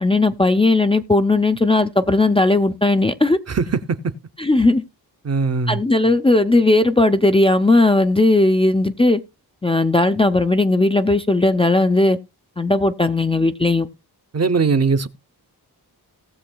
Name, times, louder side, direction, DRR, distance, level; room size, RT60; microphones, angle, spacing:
voice 1, 0.0-3.4 4.4-4.8 5.7-9.2 9.6-12.2 12.6-13.9, left 2 dB, 15° left, 0.4 m, -17 dB
voice 2, 3.5-4.2 5.2-5.8 14.3-15.1, right 4 dB, 40° right, 0.7 m, -20 dB
18.5 x 6.9 x 2.2 m
wide cardioid pair, 95°, 39 cm